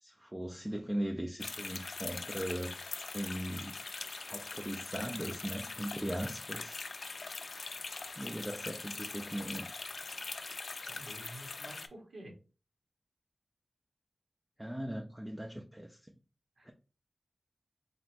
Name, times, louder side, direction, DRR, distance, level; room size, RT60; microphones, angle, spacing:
voice 1, 0.0-2.8 3.1-3.8 4.3-6.8 8.2-9.7 14.6-16.0 16.7-16.8, equal, 10° right, 0.4 m, -39 dB
sound 1, 1.4-11.9, left 3 dB, 65° left, 0.4 m, -42 dB
voice 2, 10.8-12.3 16.6-16.7, right 1 dB, 75° right, 1.7 m, -50 dB
3.9 x 2.2 x 4.3 m
wide cardioid pair, 95°, 0 cm